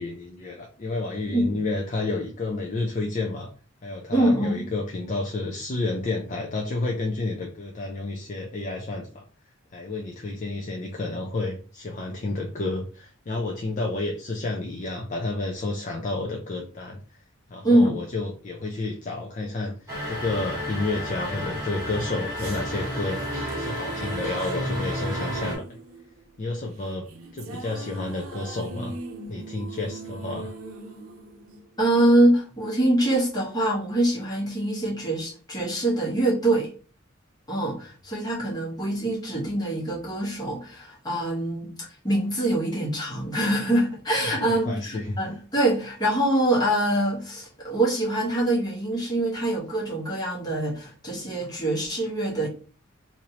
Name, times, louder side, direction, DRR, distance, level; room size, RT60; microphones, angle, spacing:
voice 1, 0.0-3.5 3.8-9.2 9.7-17.0 17.5-19.7 20.1-23.2 23.5-25.6 26.4-27.1 27.3-29.0 29.3-30.5 44.4-45.2, left 2 dB, 35° left, 0.4 m, -30 dB
voice 2, 4.1-4.6 17.6-17.9 31.8-36.7 37.5-41.7 42.0-52.5, right 1 dB, 20° left, 1.2 m, -24 dB
sound 1, 19.9-25.6, equal, 15° right, 1.5 m, -31 dB
sound 2, 21.9-32.3, right 3 dB, 85° right, 0.6 m, -41 dB
3.1 x 2.6 x 2.8 m
head